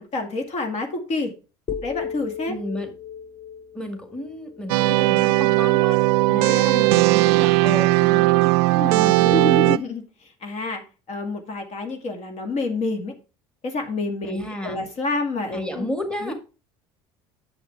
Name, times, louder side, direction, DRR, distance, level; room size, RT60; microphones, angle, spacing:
voice 1, 0.0-1.3 1.8-2.6 6.3-7.0 9.3-13.1 13.6-15.9 16.2-16.3, left 3 dB, 55° left, 5 dB, 2.1 m, -28 dB
sound 1, 1.7-5.8, left 8 dB, 30° left, 0.9 m, -36 dB
voice 2, 2.5-2.9 3.7-6.0 6.5-9.8 14.2-14.8 15.5-16.3, equal, 5° left, 6 dB, 2.1 m, -32 dB
sound 2, 4.7-9.8, right 22 dB, 75° right, 0.4 m, -18 dB
8.5 x 7.4 x 3.4 m, 0.33 s
hypercardioid pair, 75°, 13 cm